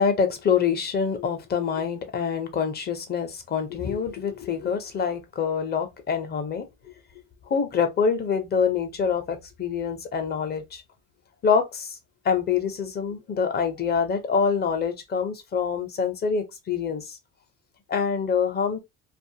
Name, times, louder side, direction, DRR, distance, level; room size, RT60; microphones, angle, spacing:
voice 1, 0.0-6.7 7.5-10.8 11.4-11.9 12.2-17.2 17.9-18.8, left 6 dB, 30° left, 0.6 m, -25 dB
2.4 x 2.4 x 2.7 m
cardioid pair, 145°, 33 cm